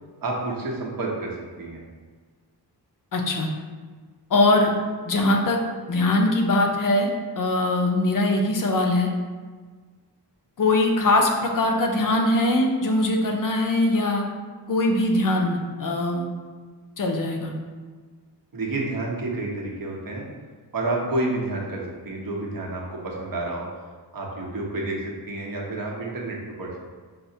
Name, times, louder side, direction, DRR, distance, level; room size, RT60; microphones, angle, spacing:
voice 1, 0.2-1.8 18.5-20.2 20.7-23.7 24.1-26.7, right 2 dB, 55° right, -2 dB, 0.8 m, -29 dB
voice 2, 3.1-3.5 4.3-4.7 5.1-5.6 5.9-7.1 7.4-9.1 10.6-14.3 14.7-16.3 17.0-17.5, left 2 dB, 50° left, 2 dB, 0.5 m, -21 dB
5.7 x 2.0 x 2.6 m, 1.5 s
wide cardioid pair, 95°, 42 cm